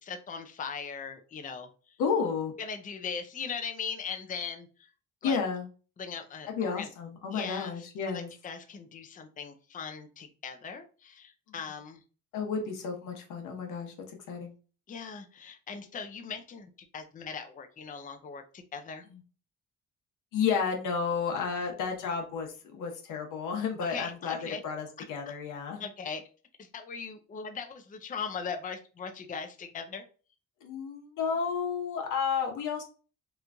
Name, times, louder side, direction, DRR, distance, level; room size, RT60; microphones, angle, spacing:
voice 1, 0.0-2.0 2.6-4.9 5.2-5.4 6.0-6.9 7.3-12.0 14.9-19.0 23.9-24.6 25.8-26.2 26.6-30.0, left 6 dB, 25° left, 6 dB, 0.5 m, -39 dB
voice 2, 2.0-2.5 5.2-5.7 6.6-8.3 11.5-11.6 12.3-14.5 19.1-19.2 20.3-24.4 24.6-25.8 30.6-32.8, left 6 dB, 85° left, 2 dB, 0.9 m, -32 dB
3.0 x 2.5 x 3.3 m, 0.37 s
cardioid pair, 90°, 30 cm